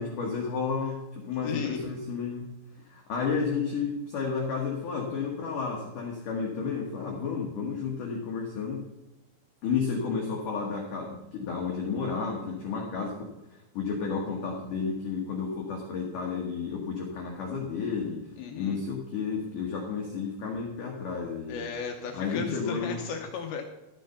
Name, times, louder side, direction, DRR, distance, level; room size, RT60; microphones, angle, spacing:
voice 1, 0.0-8.9 9.6-18.3 18.6-21.7 22.1-23.1, left 5 dB, 65° left, -1 dB, 2.2 m, -32 dB
voice 2, 1.4-1.8 18.4-18.8 21.5-23.6, left 7 dB, 85° left, 3 dB, 2.2 m, -35 dB
13.5 x 6.7 x 5.7 m, 0.96 s
omnidirectional pair, 5.6 m